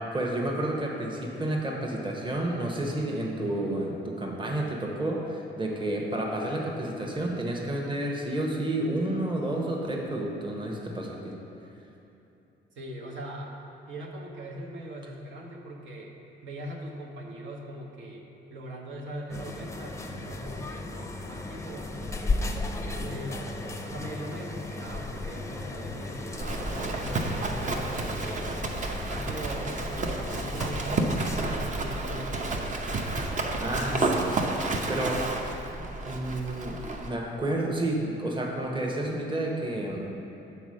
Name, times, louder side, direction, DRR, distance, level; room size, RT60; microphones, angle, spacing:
voice 1, 0.0-11.4 33.6-35.4 35.8-40.1, right 1 dB, 25° right, -1 dB, 1.1 m, -30 dB
voice 2, 12.7-13.5 13.9-16.2 16.4-22.5 22.8-26.7 26.9-28.5 29.0-33.4, right 1 dB, 75° right, -2 dB, 1.0 m, -41 dB
sound 1, 19.3-31.6, left 2 dB, 15° left, 0.5 m, -36 dB
Livestock farm animals working animals, 26.3-37.1, right 2 dB, 40° right, 0.8 m, -31 dB
7.0 x 4.3 x 6.3 m, 2.9 s
cardioid pair, 90°, 20 cm